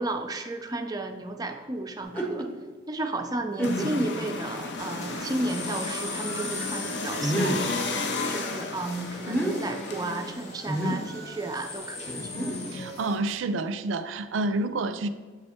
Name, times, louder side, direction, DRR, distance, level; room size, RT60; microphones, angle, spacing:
voice 1, 0.0-2.5 2.9-7.8 8.2-12.2, right 2 dB, 20° right, 0.4 m, -33 dB
sound 1, 2.0-2.5 3.1-3.2 3.6-4.1 4.8-4.9 7.2-7.7 9.1-9.5 10.7-11.1 12.1-12.9, right 1 dB, 10° left, 0.8 m, -29 dB
sound 2, 3.6-10.3, left 3 dB, 65° left, 0.5 m, -33 dB
sound 3, 4.8-13.2, left 1 dB, 35° left, 1.0 m, -39 dB
voice 2, 12.7-15.1, right 2 dB, 90° right, 0.4 m, -28 dB
7.4 x 3.3 x 4.3 m
head